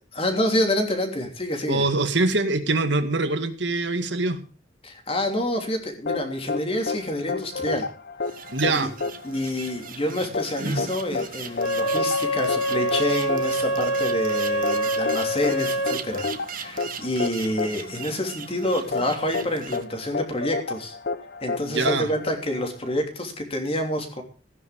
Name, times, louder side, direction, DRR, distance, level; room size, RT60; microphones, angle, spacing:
voice 1, 0.1-1.9 4.8-7.9 8.8-8.9 9.2-21.0 21.4-24.2, left 1 dB, 30° left, 4 dB, 3.1 m, -27 dB
voice 2, 1.7-4.4 8.5-8.9 21.6-22.1, right 2 dB, 65° right, 8 dB, 2.0 m, -24 dB
sound 1, 6.1-22.9, left 4 dB, 55° left, 1.0 m, -31 dB
sound 2, 8.2-19.8, right 5 dB, 45° right, 1.5 m, -38 dB
Wind instrument woodwind instrument, 11.5-16.0, equal, 85° left, 3.1 m, -25 dB
15.5 x 10.0 x 5.1 m, 0.37 s
head